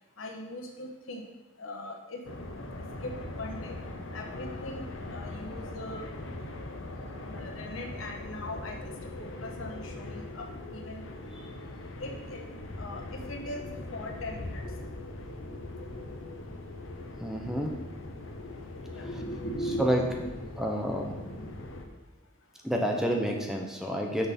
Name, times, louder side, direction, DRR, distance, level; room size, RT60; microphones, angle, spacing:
voice 1, 0.2-1.3 1.6-2.2 3.0-3.8 4.1-6.1 7.2-8.8 9.2-11.0 12.0-12.4 12.8-14.7 15.5-15.6 18.9-20.3 20.6-20.7 21.2-21.5, left 1 dB, 90° left, 2 dB, 1.2 m, -40 dB
sound 1, 2.2-21.9, left 2 dB, 70° left, 0.9 m, -41 dB
voice 2, 17.2-17.7 19.8-20.0 20.6-21.1 22.6-24.3, equal, ahead, 1 dB, 0.8 m, -29 dB
6.4 x 5.9 x 5.3 m, 1.1 s
head